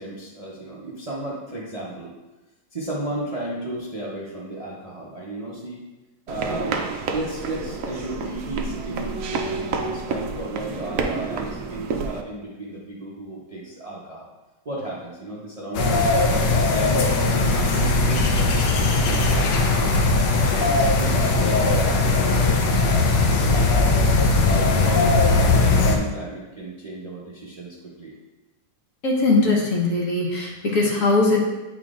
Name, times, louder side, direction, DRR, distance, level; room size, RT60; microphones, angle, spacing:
voice 1, 0.0-2.1 2.7-5.8 6.3-6.8 7.1-14.3 14.6-16.1 16.5-19.9 20.4-24.0 24.5-28.1, right 1 dB, 35° right, -6 dB, 0.6 m, -34 dB
sound 1, 6.3-12.2, right 4 dB, 70° right, 0.7 m, -29 dB
sound 2, 15.7-26.0, left 3 dB, 75° left, 1.3 m, -19 dB
voice 2, 29.0-31.4, left 3 dB, 50° left, -3 dB, 1.3 m, -20 dB
8.9 x 4.4 x 2.5 m, 1.1 s
omnidirectional pair, 1.9 m